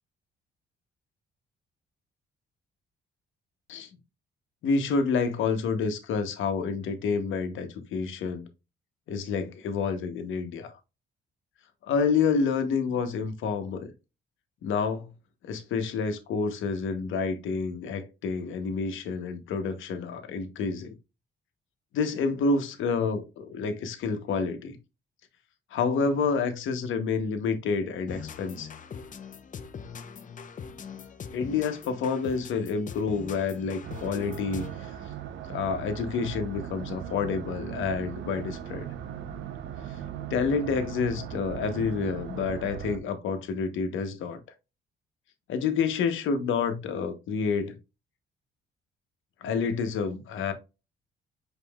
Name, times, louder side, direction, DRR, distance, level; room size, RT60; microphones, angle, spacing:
voice 1, 4.6-8.5 9.1-10.8 11.9-13.9 14.6-15.1 15.4-20.9 21.9-24.8 25.7-28.7 31.3-34.9 35.5-38.9 40.3-44.4 45.5-47.7 49.4-50.5, left 5 dB, 80° left, 1.0 m, -28 dB
sound 1, 28.1-34.9, left 6 dB, 40° left, 0.6 m, -42 dB
sound 2, 33.8-43.0, right 9 dB, 70° right, 0.7 m, -38 dB
5.3 x 4.1 x 2.3 m
cardioid pair, 90°, 20 cm